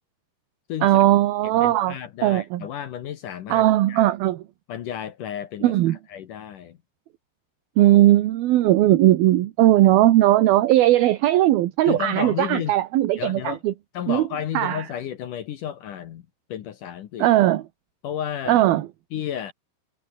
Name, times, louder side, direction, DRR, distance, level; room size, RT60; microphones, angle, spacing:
voice 1, 0.8-2.0 2.2-2.7 3.5-4.4 5.6-6.0 7.8-13.7 14.1-14.3 14.5-14.9 17.2-17.6 18.5-18.9, right 14 dB, 70° right, 2.6 m, -18 dB
voice 2, 1.6-4.0 4.7-5.7 6.1-6.8 11.8-12.7 13.2-13.6 13.9-17.3 18.0-18.6 19.1-19.5, left 10 dB, 70° left, 2.1 m, -32 dB
omnidirectional pair, 5.4 m